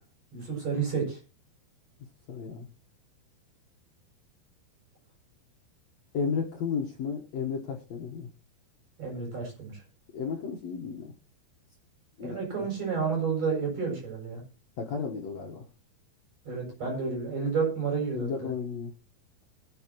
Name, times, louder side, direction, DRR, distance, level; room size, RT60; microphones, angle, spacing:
voice 1, 0.3-1.2 9.0-9.8 12.2-14.4 16.5-18.3, right 5 dB, 40° right, -1 dB, 8.6 m, -30 dB
voice 2, 2.3-2.7 6.1-8.3 10.1-11.1 12.2-12.7 14.8-15.6 18.1-18.9, left 6 dB, 65° left, 2 dB, 1.8 m, -33 dB
21.5 x 8.8 x 3.0 m, 0.31 s
omnidirectional pair, 4.8 m